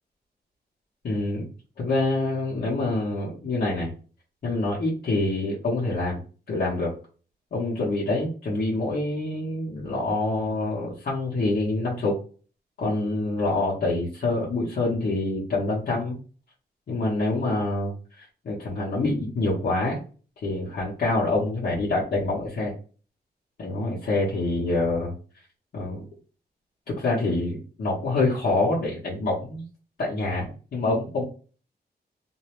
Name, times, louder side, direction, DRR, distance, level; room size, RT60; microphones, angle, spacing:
voice 1, 1.0-1.5 1.8-3.9 4.4-6.2 6.5-6.9 7.5-12.2 12.8-16.2 16.9-20.0 20.4-22.7 23.6-25.1 25.7-26.0 26.9-29.7 30.0-31.2, left 2 dB, 65° left, -6 dB, 0.8 m, -26 dB
2.6 x 2.0 x 2.9 m, 0.38 s
wide cardioid pair, 145°, 17 cm